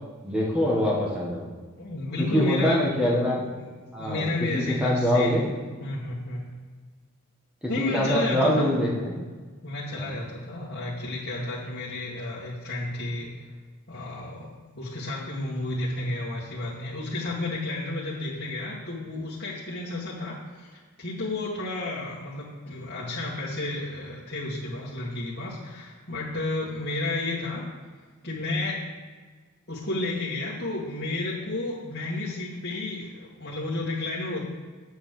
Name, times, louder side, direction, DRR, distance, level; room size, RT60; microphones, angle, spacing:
voice 1, 0.2-1.4 2.2-3.4 3.9-4.3 4.5-5.4 7.8-9.1 9.9-10.1, equal, 5° right, -5 dB, 1.5 m, -24 dB
voice 2, 1.8-2.8 4.0-5.4 5.8-6.5 7.7-8.7 9.6-13.3 13.9-14.5 14.8-27.7 28.2-28.8 29.7-34.4, left 2 dB, 50° left, -9 dB, 1.9 m, -31 dB
9.2 x 6.8 x 6.7 m, 1.4 s
head